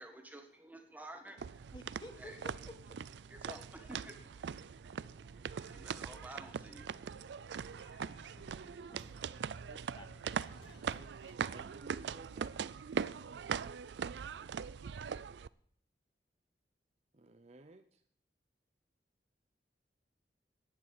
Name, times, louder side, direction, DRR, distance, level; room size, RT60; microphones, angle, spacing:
voice 1, 0.0-1.7 2.2-2.4 3.2-9.0, right 1 dB, 10° right, 4 dB, 1.5 m, -54 dB
sound 1, 1.4-15.5, right 6 dB, 80° right, 0.4 m, -41 dB
voice 2, 1.7-3.0 8.7-9.0 9.7-10.1, left 1 dB, 25° left, 5 dB, 1.6 m, -52 dB
sound 2, 3.7-11.6, left 1 dB, 80° left, 2.3 m, -63 dB
voice 3, 11.4-12.6 17.1-18.0, right 2 dB, 35° right, 9 dB, 0.6 m, -56 dB
11.0 x 9.0 x 7.6 m, 0.63 s
head